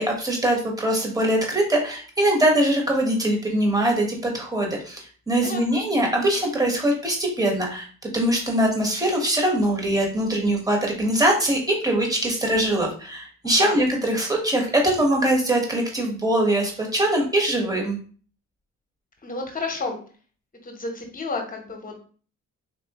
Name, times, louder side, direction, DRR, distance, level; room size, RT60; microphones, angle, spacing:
voice 1, 0.0-18.0, right 1 dB, 10° right, 0 dB, 1.4 m, -22 dB
voice 2, 5.4-5.8 13.4-13.8 19.2-20.0 20.6-22.0, left 3 dB, 30° left, 3 dB, 1.2 m, -31 dB
4.2 x 3.0 x 3.0 m, 0.42 s
cardioid pair, 90°, 30 cm